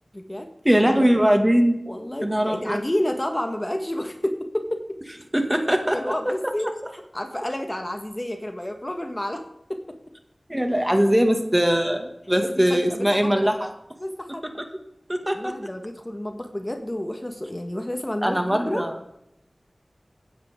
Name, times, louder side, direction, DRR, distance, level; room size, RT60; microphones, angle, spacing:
voice 1, 0.1-0.5 1.9-4.8 5.9-6.7 6.9-9.4 9.7-10.0 12.4-13.3 14.0-14.4 15.3-18.8, left 1 dB, 25° left, 5 dB, 1.5 m, -30 dB
voice 2, 0.6-1.8 2.2-2.8 5.3-6.0 10.5-13.7 15.1-15.5 18.2-19.0, equal, 15° right, 4 dB, 2.1 m, -21 dB
16.0 x 9.9 x 3.8 m, 0.79 s
wide cardioid pair, 45°, 0 cm